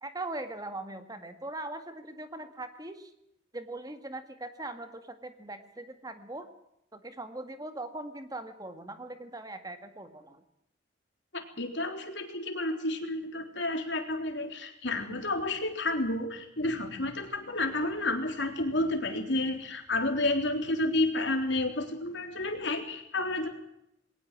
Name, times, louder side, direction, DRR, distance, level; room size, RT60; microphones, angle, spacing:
voice 1, 0.0-3.1 3.5-6.5 6.9-10.4, right 2 dB, 20° right, 8 dB, 1.9 m, -40 dB
voice 2, 11.3-23.5, left 2 dB, 65° left, 4 dB, 3.7 m, -30 dB
21.5 x 18.5 x 7.6 m, 0.81 s
head